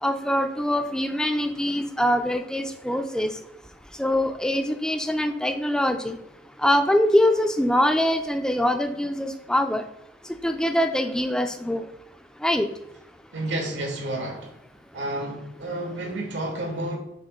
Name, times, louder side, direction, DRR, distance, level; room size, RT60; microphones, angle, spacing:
voice 1, 0.0-3.3 4.0-6.2 6.6-9.8 10.4-11.9 12.4-12.7, left 1 dB, 5° left, 7 dB, 0.4 m, -23 dB
voice 2, 13.3-14.5 14.9-17.0, right 1 dB, 80° right, 2 dB, 1.6 m, -30 dB
6.5 x 3.1 x 5.0 m, 0.83 s
head